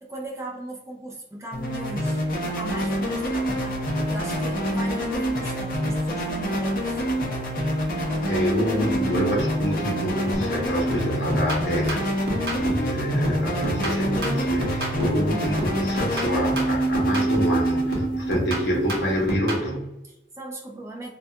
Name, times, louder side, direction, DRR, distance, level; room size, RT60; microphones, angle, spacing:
voice 1, 0.0-7.0 20.0-21.1, right 1 dB, 15° right, -2 dB, 0.4 m, -38 dB
sound 1, 1.5-19.3, equal, 50° left, 0.6 m, -26 dB
voice 2, 8.3-20.0, equal, 80° left, -2 dB, 0.8 m, -27 dB
sound 2, 10.3-10.6 10.9-12.9 13.2-15.3 15.6-17.6 17.9-19.7, equal, 65° right, 0.8 m, -30 dB
2.3 x 2.2 x 2.7 m, 0.91 s
head